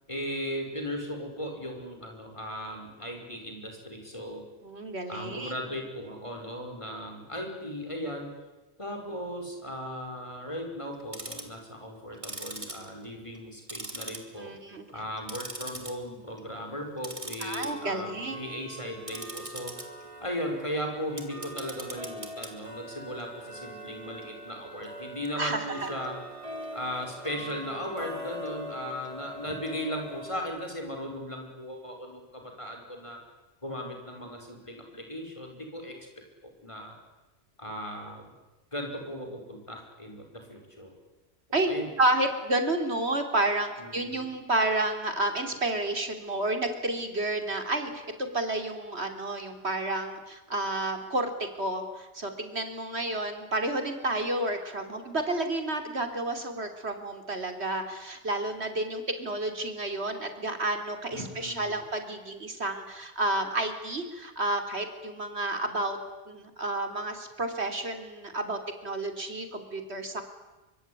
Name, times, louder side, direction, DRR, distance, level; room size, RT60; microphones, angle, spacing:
voice 1, 0.1-4.5 5.1-8.3 8.8-14.5 14.9-19.7 20.2-26.2 26.7-33.2 33.6-36.0 36.4-37.0 37.6-38.3 38.7-40.9 41.5-41.9 43.8-44.2 61.1-61.8, equal, 30° left, 3 dB, 5.7 m, -37 dB
voice 2, 4.6-5.5 14.4-14.9 17.4-18.4 25.4-25.9 41.5-41.7 42.0-51.3 51.6-66.0 66.3-70.2, right 2 dB, 80° right, 6 dB, 3.7 m, -30 dB
Tick-tock, 10.9-11.6 12.1-13.4 13.7-14.6 14.9-15.9 16.3-16.5 17.0-30.4, right 1 dB, 30° right, 2.9 m, -41 dB
24.5 x 24.0 x 9.9 m, 1.1 s
omnidirectional pair, 1.1 m